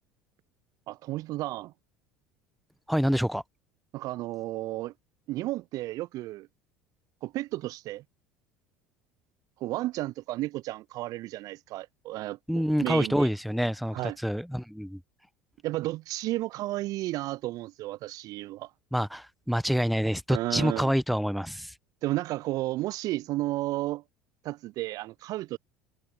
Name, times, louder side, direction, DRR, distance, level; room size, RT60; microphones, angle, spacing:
voice 1, 0.9-1.7 3.9-4.9 5.3-6.5 7.2-8.0 9.6-13.3 13.9-14.2 15.6-18.7 20.3-20.9 22.0-24.0 24.4-25.6, right 17 dB, 50° right, 0.6 m, -33 dB
voice 2, 2.9-3.4 12.5-15.0 18.9-21.7, equal, ahead, 1.3 m, -27 dB
figure-of-eight pair, 65°, 8 cm